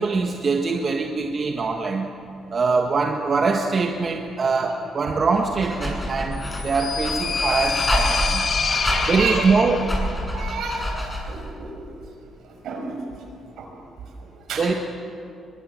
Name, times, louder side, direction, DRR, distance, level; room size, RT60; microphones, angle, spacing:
voice 1, 0.0-2.1 2.5-8.4 9.1-9.8 14.6-14.7, right 4 dB, 45° right, 3 dB, 1.5 m, -23 dB
Dog, 5.3-11.4, equal, 15° left, 7.6 m, -28 dB
sound 1, 6.4-10.1, left 5 dB, 45° left, 1.1 m, -26 dB
voice 2, 8.6-9.4 10.3-10.9 11.3-11.7 12.0-12.1 12.4-12.9 13.6-13.7 14.2-14.8, right 5 dB, 75° right, 2 dB, 6.1 m, -31 dB
22.5 x 22.0 x 7.7 m, 2.6 s
cardioid pair, 90°, 0 cm